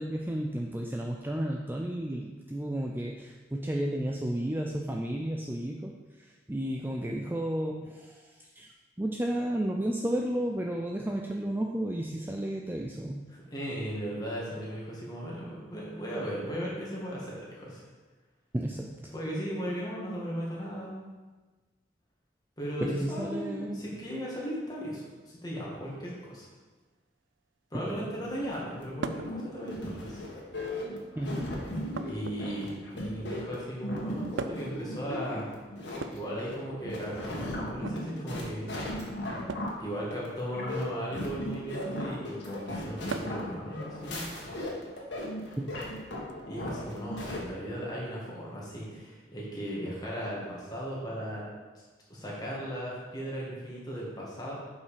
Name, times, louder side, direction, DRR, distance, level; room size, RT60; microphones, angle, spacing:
voice 1, 0.0-13.2 18.5-19.1 22.8-23.9 27.7-28.2 31.2-31.6 45.6-45.9, right 1 dB, 10° right, 1 dB, 0.4 m, -33 dB
voice 2, 13.3-17.8 19.1-21.0 22.6-26.5 27.7-30.2 32.1-32.7 33.0-35.5 36.1-38.6 39.8-44.3 46.5-51.4 52.1-54.5, equal, 20° left, -5 dB, 2.1 m, -37 dB
sound 1, 28.2-47.4, left 1 dB, 75° left, 1.7 m, -37 dB
sound 2, 29.0-29.3 30.4-30.9 31.9-33.0 34.4-34.8 35.9-37.0 37.7-38.0 39.5-39.8 41.3-41.7 43.1-43.5 45.0-45.1 46.3-46.4, right 4 dB, 90° right, 0.5 m, -39 dB
7.9 x 5.5 x 5.0 m, 1.3 s
head